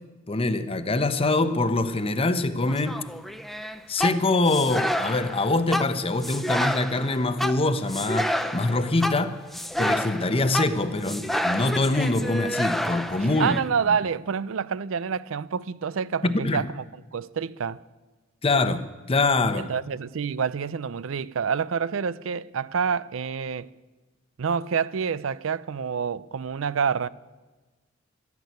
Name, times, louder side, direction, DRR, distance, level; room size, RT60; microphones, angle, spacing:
voice 1, 0.3-3.0 3.9-9.3 9.8-13.6 16.2-16.6 18.4-19.7, left 2 dB, 30° left, 0.8 m, -24 dB
sound 1, 2.7-13.6, equal, ahead, 0.6 m, -29 dB
voice 2, 13.2-16.8 17.1-17.8 19.6-23.7 24.4-27.1, right 6 dB, 75° right, 0.5 m, -27 dB
12.5 x 11.0 x 9.3 m
head